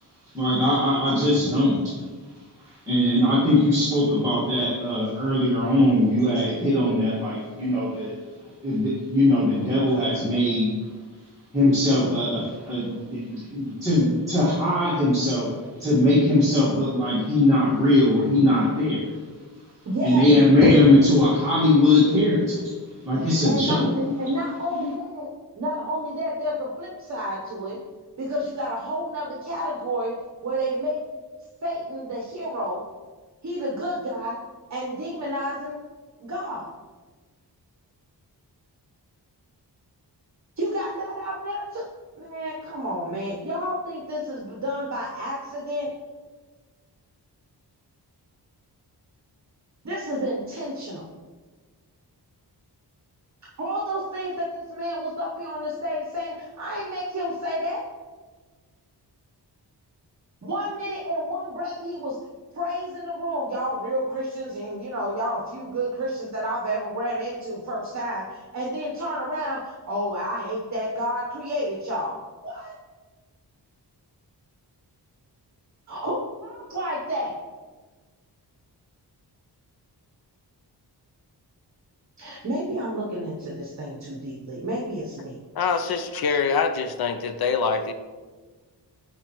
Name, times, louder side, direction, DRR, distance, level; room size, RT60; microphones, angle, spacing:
voice 1, 0.3-2.0 2.6-8.2 8.6-10.7 11.5-19.2 20.0-22.7 23.0-24.1 24.7-24.9, left 1 dB, 10° right, -10 dB, 1.6 m, -20 dB
voice 2, 19.9-20.2 23.4-25.3 25.5-27.8 28.2-30.1 30.4-31.0 31.6-32.8 33.4-34.4 34.7-35.8 36.2-36.7 40.6-41.8 42.2-45.9 49.8-51.0 53.6-57.8 60.4-62.2 62.5-72.2 72.4-72.7 75.9-77.4 82.2-85.4, equal, 40° right, -2 dB, 1.0 m, -30 dB
voice 3, 85.5-87.9, left 5 dB, 60° left, 8 dB, 0.5 m, -24 dB
9.2 x 4.4 x 3.0 m, 1.4 s
wide cardioid pair, 160°, 41 cm